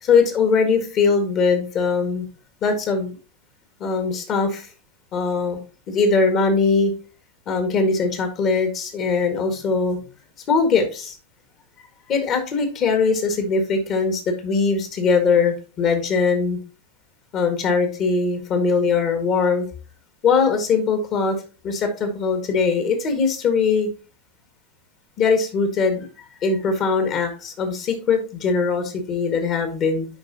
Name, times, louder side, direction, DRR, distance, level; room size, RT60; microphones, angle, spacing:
voice 1, 0.0-2.3 2.6-3.1 3.8-4.7 5.1-5.6 5.9-6.9 7.5-10.0 10.5-11.2 12.1-16.6 17.3-19.7 20.2-21.4 21.6-23.9 25.2-26.1 26.4-30.1, left 4 dB, 35° left, 6 dB, 1.8 m, -21 dB
9.7 x 5.1 x 2.8 m, 0.35 s
figure-of-eight pair, 90°, 0 cm